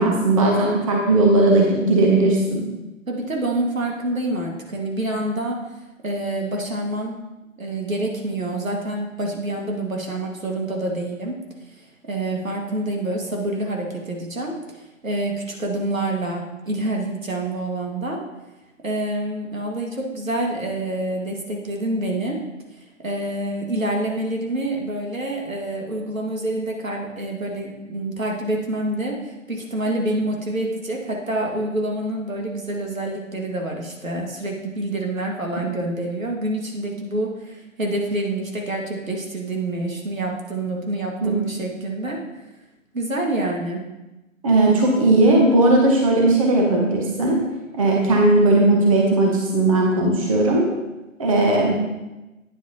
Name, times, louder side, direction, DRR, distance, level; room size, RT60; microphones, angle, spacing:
voice 1, 0.0-2.6 41.2-41.3 44.4-47.4 47.8-50.6 51.2-51.8, right 2 dB, 25° right, -1 dB, 1.0 m, -17 dB
voice 2, 3.1-5.6 6.0-7.2 7.6-11.4 11.8-14.6 15.0-18.2 18.8-22.4 23.0-29.2 29.5-42.2 42.9-43.8, right 1 dB, 75° right, 0 dB, 2.0 m, -27 dB
9.2 x 7.9 x 2.9 m, 1.0 s
figure-of-eight pair, 140°, 41 cm